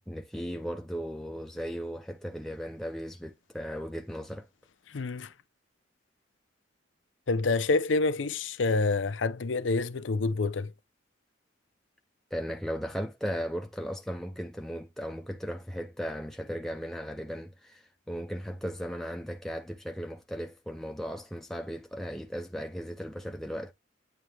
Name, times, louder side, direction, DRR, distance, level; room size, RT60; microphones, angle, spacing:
voice 1, 0.0-4.5 12.3-23.7, equal, ahead, 0.5 m, -36 dB
voice 2, 4.9-5.3 7.3-10.7, left 3 dB, 85° left, 0.6 m, -27 dB
9.2 x 3.3 x 3.3 m
head